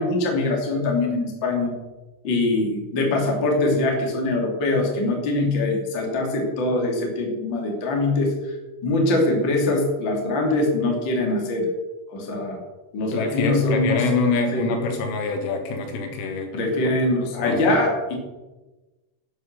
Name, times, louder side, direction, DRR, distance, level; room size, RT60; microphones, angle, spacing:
voice 1, 0.0-1.7 2.2-8.6 8.8-11.7 12.1-12.6 12.9-14.0 14.5-14.7 16.5-18.2, left 2 dB, 30° left, 0 dB, 2.6 m, -23 dB
voice 2, 13.1-16.5 16.8-16.9 17.2-17.7, left 3 dB, 75° left, 4 dB, 4.2 m, -25 dB
11.0 x 9.5 x 6.8 m, 1.1 s
omnidirectional pair, 5.8 m